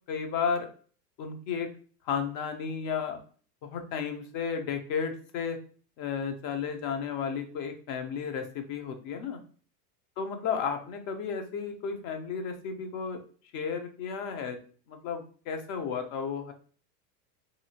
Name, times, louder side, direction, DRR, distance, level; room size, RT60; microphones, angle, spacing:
voice 1, 0.1-0.7 1.2-1.7 2.1-3.2 3.6-5.6 6.0-9.4 10.2-13.2 13.5-14.6 14.9-16.5, left 6 dB, 40° left, 6 dB, 0.6 m, -33 dB
2.7 x 2.4 x 2.8 m, 0.42 s
hypercardioid pair, 100°, 50 cm